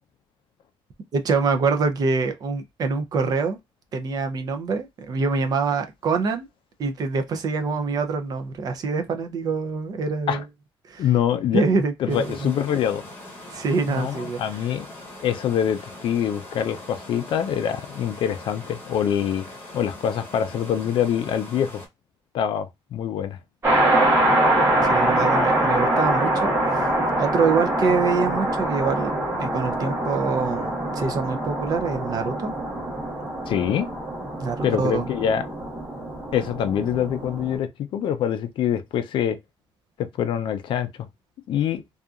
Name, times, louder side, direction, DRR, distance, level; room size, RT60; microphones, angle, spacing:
voice 1, 1.1-3.6 3.9-6.5 6.8-10.4 10.9-11.1 11.5-12.5 13.5-14.4 24.8-26.9 27.2-29.1 29.4-32.5 34.4-35.1, right 4 dB, 40° right, 0.5 m, -25 dB
voice 2, 11.0-13.0 13.9-14.9 15.2-19.4 19.7-21.8 22.3-23.4 33.5-33.9 34.6-35.5 36.3-39.4 40.0-41.1 41.5-41.8, left 9 dB, 60° left, 0.4 m, -25 dB
sound 1, 12.1-21.9, left 1 dB, 20° left, 0.8 m, -42 dB
sound 2, 23.6-37.6, right 1 dB, 20° right, 1.1 m, -24 dB
2.7 x 2.4 x 2.3 m
cardioid pair, 180°, 10 cm